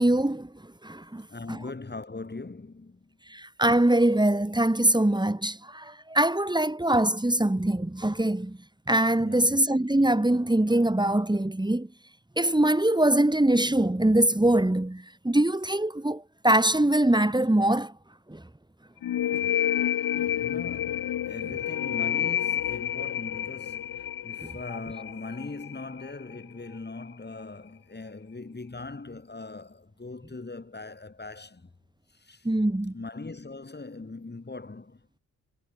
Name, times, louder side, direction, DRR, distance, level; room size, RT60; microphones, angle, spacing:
voice 1, 0.0-1.6 3.3-8.6 8.9-11.9 12.4-17.9 18.3-18.4 19.3-19.4 20.1-20.2 24.4-24.5 32.4-32.9, right 1 dB, 15° right, 5.1 m, -23 dB
voice 2, 1.3-3.1 9.2-9.5 20.3-31.7 32.2-32.5 32.9-35.2, left 3 dB, 30° left, 7.5 m, -40 dB
sound 1, 19.0-26.4, left 11 dB, 90° left, 2.3 m, -29 dB
cardioid pair, 65°, 34 cm